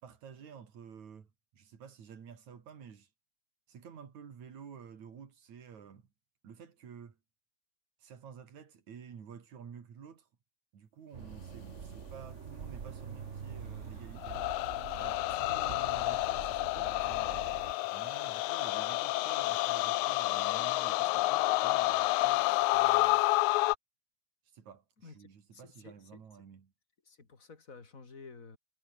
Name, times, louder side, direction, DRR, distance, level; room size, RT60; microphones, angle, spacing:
voice 1, 0.0-3.1 3.7-6.1 6.4-7.2 8.0-10.3 10.7-14.4 15.0-17.5 17.9-23.3 24.5-26.7, right 7 dB, 70° right, 4.2 m, -51 dB
sound 1, 11.1-17.7, right 6 dB, 55° right, 0.8 m, -45 dB
sound 2, 14.2-23.7, left 20 dB, 85° left, 2.0 m, -29 dB
voice 2, 25.0-26.2 27.0-28.6, left 4 dB, 25° left, 2.9 m, -52 dB
omnidirectional pair, 3.4 m